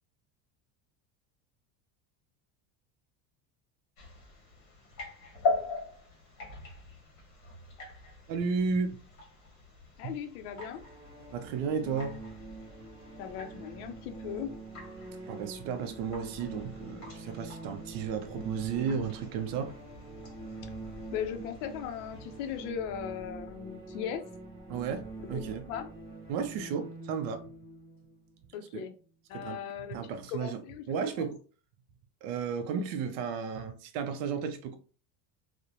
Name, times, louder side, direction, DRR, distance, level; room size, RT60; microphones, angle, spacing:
sound 1, 4.0-22.7, left 3 dB, 40° left, 0.9 m, -42 dB
voice 1, 8.3-9.0 10.0-10.1 11.3-12.2 15.3-19.7 24.7-25.0 25.3-25.7 26.3-27.4 28.7-28.8 29.3-29.6 29.9-30.6 30.9-31.4 32.2-34.8, right 6 dB, 50° right, 0.5 m, -33 dB
voice 2, 10.0-10.8 13.2-14.5 21.1-24.2 25.3-25.9 28.5-28.9 29.3-30.0 30.3-31.3, left 8 dB, 85° left, 0.5 m, -38 dB
sound 2, 10.4-29.1, right 3 dB, 10° right, 0.7 m, -45 dB
2.9 x 2.1 x 2.4 m
cardioid pair, 165°, 44 cm